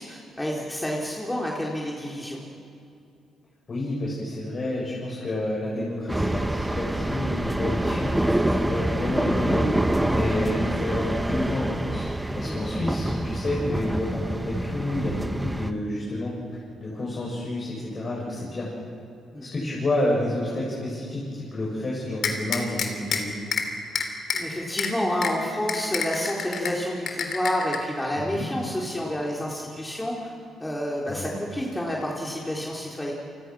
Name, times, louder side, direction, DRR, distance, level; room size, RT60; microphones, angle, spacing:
voice 1, 0.0-2.4 12.4-12.6 19.3-19.5 24.3-30.3 30.6-33.1, equal, 10° left, -3 dB, 4.0 m, -29 dB
voice 2, 3.7-9.7 10.0-12.0 12.3-16.3 16.8-18.7 19.4-23.3 28.1-28.5 31.1-31.3, left 1 dB, 40° left, -5 dB, 7.7 m, -29 dB
sound 1, 6.1-15.7, right 1 dB, 10° right, 1.2 m, -26 dB
sound 2, 22.2-23.2 23.5-23.6 23.9-24.4 24.8-24.9 25.2-25.3 25.7-26.7 27.1-27.8, left 6 dB, 60° left, 3.6 m, -26 dB
30.0 x 25.0 x 6.3 m, 2.5 s
cardioid pair, 90°, 0 cm